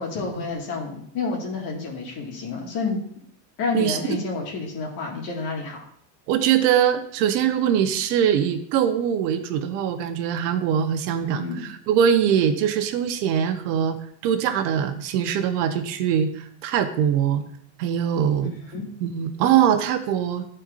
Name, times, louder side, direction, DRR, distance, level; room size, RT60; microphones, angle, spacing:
voice 1, 0.0-3.0 3.6-5.8 11.2-11.6 18.7-18.8, left 4 dB, 50° left, -1 dB, 1.9 m, -29 dB
voice 2, 6.3-14.0 14.2-17.4 17.8-18.5 19.0-20.5, right 9 dB, 80° right, 8 dB, 0.9 m, -22 dB
12.0 x 4.4 x 2.5 m, 0.64 s
cardioid pair, 165°, 48 cm